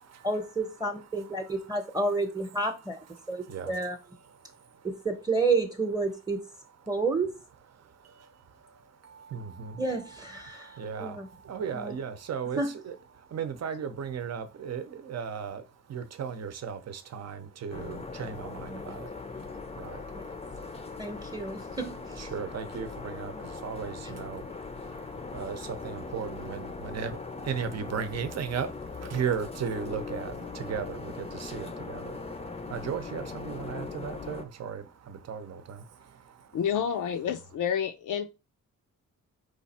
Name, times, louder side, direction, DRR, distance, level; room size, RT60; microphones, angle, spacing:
voice 1, 0.2-3.0 3.3-4.0 4.8-6.4 6.9-7.3 9.8-10.7 11.0-11.3 11.7-12.0 12.6-12.7 20.1-20.2 21.0-22.0, right 3 dB, 10° right, 0.9 m, -30 dB
voice 2, 9.3-9.7 10.8-11.1 11.5-12.9 13.3-15.6 15.9-16.8 17.1-18.7 19.8-20.0 22.2-23.3 23.6-24.4 25.3-25.6 25.8-27.2 27.5-28.7 29.1-30.3 30.7-31.1 31.4-32.0 32.7-34.8 35.3-35.8, right 7 dB, 50° right, 0.8 m, -35 dB
sound 1, 17.7-34.5, left 4 dB, 20° left, 0.6 m, -40 dB
voice 3, 36.5-38.3, left 8 dB, 70° left, 0.6 m, -29 dB
4.7 x 2.5 x 4.2 m
cardioid pair, 85°, 32 cm